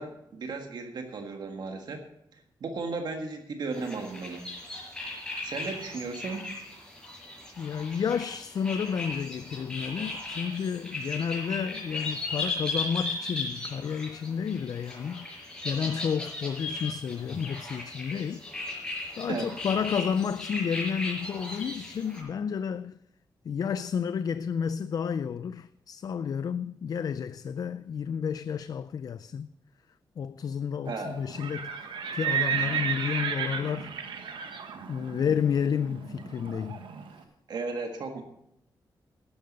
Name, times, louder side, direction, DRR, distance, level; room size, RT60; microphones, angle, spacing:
voice 1, 0.0-2.0 2.6-4.4 5.4-6.5 19.3-19.5 30.9-31.1 37.5-38.2, right 4 dB, 60° right, 1.7 m, -35 dB
sound 1, 3.7-22.2, left 2 dB, 10° left, 5.3 m, -37 dB
voice 2, 7.6-18.8 19.2-23.0 23.4-29.5 30.2-34.0 34.9-36.8, left 7 dB, 50° left, 0.4 m, -31 dB
Livestock farm animals working animals, 31.2-37.1, right 7 dB, 85° right, 1.3 m, -33 dB
12.5 x 10.5 x 5.3 m
wide cardioid pair, 145°, 8 cm